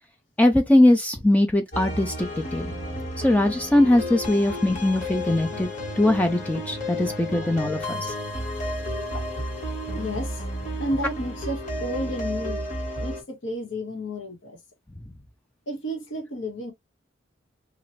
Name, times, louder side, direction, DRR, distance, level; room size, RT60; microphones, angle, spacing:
voice 1, 0.4-2.7 3.2-5.7 6.0-8.1, left 1 dB, 10° left, 0.3 m, -21 dB
sound 1, 1.7-13.2, equal, 40° left, 1.3 m, -32 dB
voice 2, 7.0-7.5 7.8-8.2 9.1-9.3 9.6-10.4 10.8-12.6 13.0-14.6 15.7-16.7, equal, 85° left, 1.2 m, -32 dB
2.9 x 2.4 x 3.1 m
head